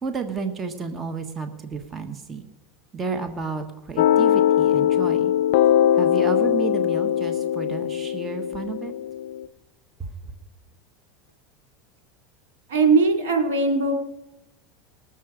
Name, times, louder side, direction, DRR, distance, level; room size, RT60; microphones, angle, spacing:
voice 1, 0.0-2.5 2.9-5.3 5.9-8.9 10.0-10.3, right 5 dB, 25° right, 6 dB, 1.2 m, -32 dB
sound 1, 4.0-9.5, left 10 dB, 70° left, 0.4 m, -21 dB
voice 2, 12.7-14.1, right 3 dB, 85° right, 3 dB, 2.6 m, -20 dB
19.5 x 7.1 x 5.0 m, 0.98 s
supercardioid pair, 115°, 0 cm